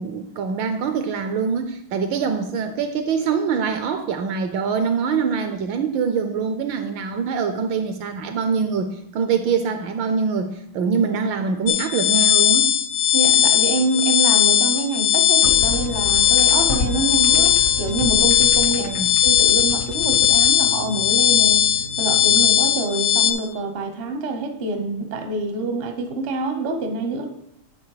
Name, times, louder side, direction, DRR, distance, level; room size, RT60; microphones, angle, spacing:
voice 1, 0.0-12.7 18.8-19.1, right 6 dB, 75° right, 8 dB, 1.2 m, -24 dB
sound 1, 11.7-23.3, left 10 dB, 75° left, 1.6 m, -18 dB
voice 2, 13.1-18.9 19.2-21.7 22.0-27.3, right 3 dB, 50° right, 6 dB, 0.7 m, -26 dB
sound 2, 15.4-22.7, left 4 dB, 55° left, 0.8 m, -32 dB
10.5 x 4.1 x 4.8 m, 0.81 s
omnidirectional pair, 2.4 m